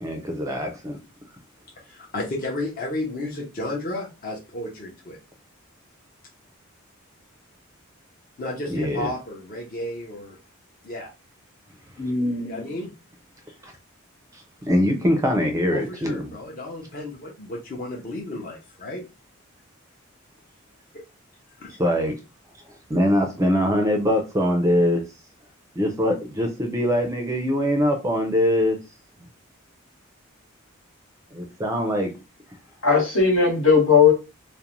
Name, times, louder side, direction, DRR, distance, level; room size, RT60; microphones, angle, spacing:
voice 1, 0.0-1.0 8.7-9.1 13.6-13.7 14.7-16.3 21.8-22.2 22.9-25.0 25.8-28.8 31.3-32.1, equal, 15° right, 0.4 m, -22 dB
voice 2, 1.8-5.2 8.4-10.4 10.8-11.1 12.4-12.9 15.7-19.0 21.6-21.8, left 1 dB, 40° left, 0.6 m, -33 dB
voice 3, 12.0-12.6 32.8-34.1, left 5 dB, 70° left, 1.1 m, -18 dB
2.5 x 2.1 x 2.9 m
head